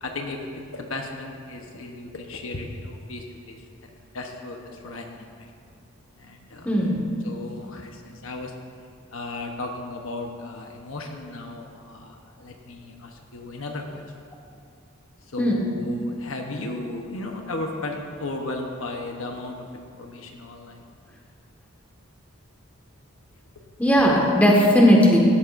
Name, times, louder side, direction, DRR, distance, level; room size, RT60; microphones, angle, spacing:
voice 1, 0.0-3.6 4.1-5.5 6.2-6.8 7.2-8.5 9.1-14.0 15.3-20.9, left 2 dB, 70° left, 2 dB, 1.1 m, -35 dB
voice 2, 6.6-7.1 15.4-15.6 23.8-25.2, equal, 5° left, -3 dB, 1.7 m, -17 dB
17.0 x 12.5 x 2.6 m, 2.3 s
head